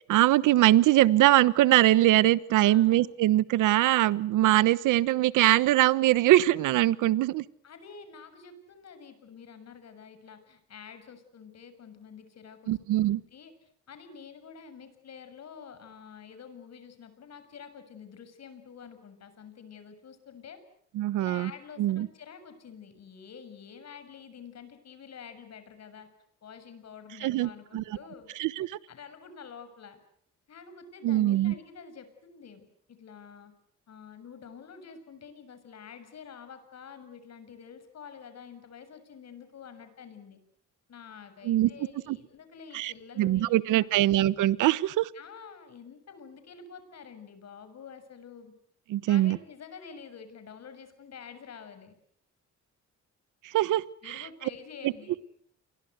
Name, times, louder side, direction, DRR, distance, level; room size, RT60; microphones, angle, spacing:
voice 1, 0.0-7.4 12.7-13.2 20.9-21.5 21.8-22.1 27.2-28.0 28.4-28.8 31.0-31.5 41.4-41.7 42.1-42.2 42.7-45.1 48.9-49.4 53.5-54.3 54.8-54.9, right 15 dB, 90° right, 18 dB, 1.1 m, -22 dB
voice 2, 2.6-3.0 7.6-13.5 13.9-20.6 21.2-26.1 26.4-28.3 28.9-30.0 30.5-33.5 33.9-40.4 40.9-44.1 45.1-48.5 49.1-52.0 54.0-55.2, left 6 dB, 60° left, 10 dB, 6.8 m, -48 dB
29.5 x 23.5 x 8.1 m, 0.68 s
cardioid pair, 90°, 30 cm